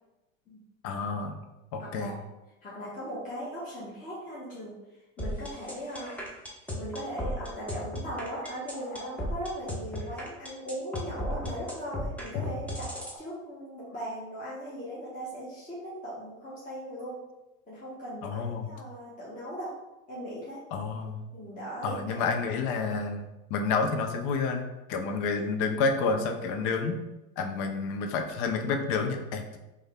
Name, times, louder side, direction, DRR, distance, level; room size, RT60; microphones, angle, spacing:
voice 1, 0.8-1.4 1.7-2.2 18.2-18.7 20.7-21.2 21.8-23.2 23.5-27.0 27.4-29.6, left 4 dB, 50° left, 5 dB, 0.6 m, -29 dB
voice 2, 1.8-2.2 2.6-4.8 5.2-6.2 6.7-12.9 13.2-17.1 17.7-19.7 20.1-20.6 21.3-22.3 25.4-25.5, equal, 20° left, -8 dB, 1.0 m, -38 dB
sound 1, 5.2-13.2, left 1 dB, 5° left, 0.7 m, -35 dB
3.2 x 2.2 x 3.4 m, 0.99 s
hypercardioid pair, 90°, 40 cm